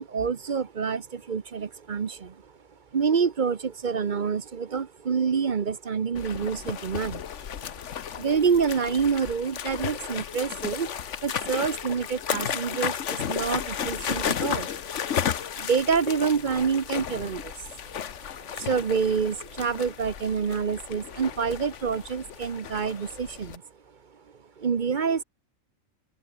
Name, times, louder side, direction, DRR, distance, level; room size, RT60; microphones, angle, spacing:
voice 1, 0.0-2.5 2.9-7.3 8.1-23.6 24.6-25.2, right 6 dB, 40° right, 0.9 m, -27 dB
sound 1, 6.1-23.6, left 8 dB, 60° left, 1.3 m, -33 dB
open air
omnidirectional pair, 1.4 m